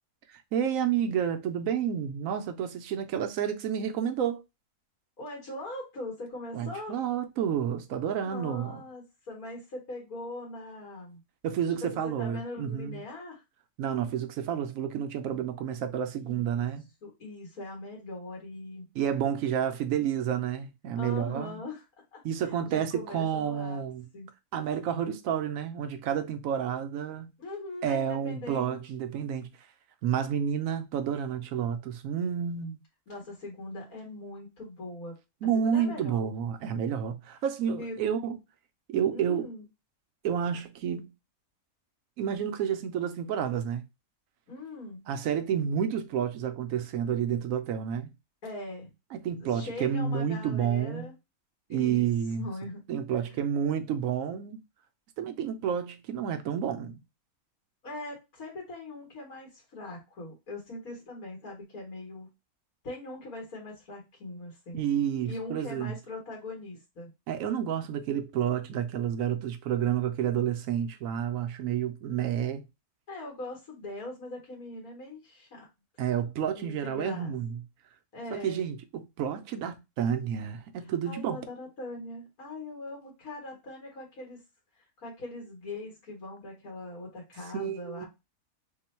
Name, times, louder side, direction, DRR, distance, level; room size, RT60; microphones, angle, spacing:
voice 1, 0.3-4.4 6.5-8.8 11.4-13.0 13.8-16.8 18.9-21.6 22.2-24.1 24.5-27.3 27.8-29.5 30.0-32.8 35.4-38.4 38.9-39.5 40.2-41.1 42.2-43.8 45.1-48.1 49.1-51.1 51.7-52.5 52.9-54.6 55.2-57.0 64.7-65.9 67.3-72.6 76.0-77.6 78.3-81.4 87.5-88.1, right 8 dB, 70° right, 0.9 m, -30 dB
voice 2, 5.2-7.0 8.2-11.2 12.0-13.4 16.1-16.7 17.0-18.9 21.0-21.8 22.1-23.8 24.1-24.3 27.4-28.8 33.1-35.1 35.5-36.3 37.8-38.1 39.1-39.6 44.5-45.1 48.4-48.9 49.4-51.1 51.7-52.1 52.4-52.9 53.2-53.3 57.8-62.3 62.8-64.9 65.2-67.1 73.1-75.7 76.5-77.3 78.1-78.7 80.8-84.4 84.8-88.1, left 2 dB, 70° left, 1.9 m, -41 dB
3.7 x 2.2 x 4.2 m
omnidirectional pair, 1.6 m